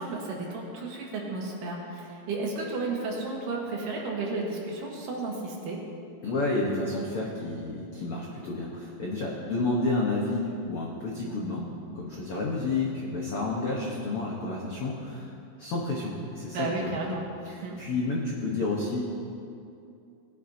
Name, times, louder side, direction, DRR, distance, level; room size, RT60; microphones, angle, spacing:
voice 1, 0.0-5.8 16.5-17.2 17.6-17.8, right 3 dB, 65° right, -1 dB, 2.8 m, -33 dB
voice 2, 6.2-11.7 11.9-15.3 15.6-16.9 17.5-19.0, left 2 dB, 85° left, -3 dB, 1.2 m, -30 dB
18.5 x 10.0 x 2.8 m, 2.6 s
omnidirectional pair, 4.4 m